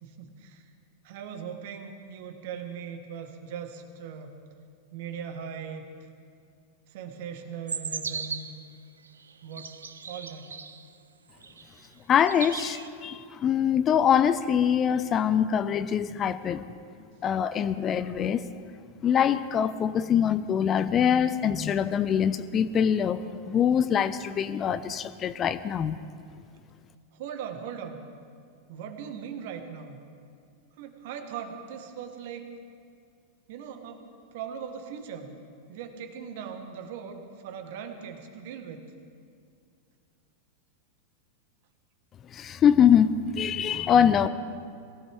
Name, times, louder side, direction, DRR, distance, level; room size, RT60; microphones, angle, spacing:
voice 1, 0.0-0.6 1.0-4.3 4.9-5.9 6.9-8.5 9.4-9.7 10.1-10.5 27.1-28.0 28.7-30.0 30.8-32.5 33.5-35.3 35.7-38.8, right 7 dB, 50° right, 6 dB, 1.7 m, -39 dB
sound 1, 7.7-8.6 9.3-10.8 11.4-11.9 12.1-12.9, right 5 dB, 70° right, 0.8 m, -36 dB
voice 2, 12.1-16.6 17.2-18.4 19.0-26.0 42.3-44.3, left 8 dB, 25° left, 14 dB, 0.6 m, -24 dB
22.0 x 16.5 x 3.6 m, 2.3 s
figure-of-eight pair, 90°, 0 cm